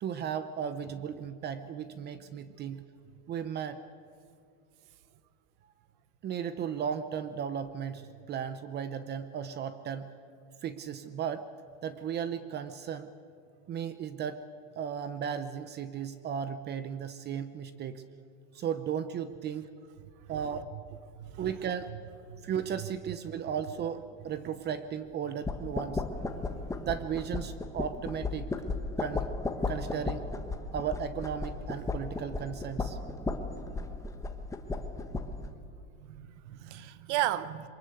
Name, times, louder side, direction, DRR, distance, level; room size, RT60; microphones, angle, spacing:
voice 1, 0.0-2.8 3.3-3.8 6.2-8.0 8.3-10.1 10.6-11.4 11.8-13.1 13.7-14.4 14.8-18.0 18.5-19.7 20.3-20.7 21.4-21.9 22.4-26.0 26.8-28.5 29.0-29.3 29.7-30.3 30.7-33.1, right 8 dB, 30° right, 0.8 m, -35 dB
voice 2, 2.1-2.8 20.7-20.8 21.2-21.5 22.3-22.4 22.8-22.9 36.0-37.7, right 13 dB, 70° right, 1.2 m, -35 dB
sound 1, 25.4-35.5, left 3 dB, 10° left, 1.2 m, -35 dB
23.0 x 20.0 x 8.3 m
supercardioid pair, 145°, 36 cm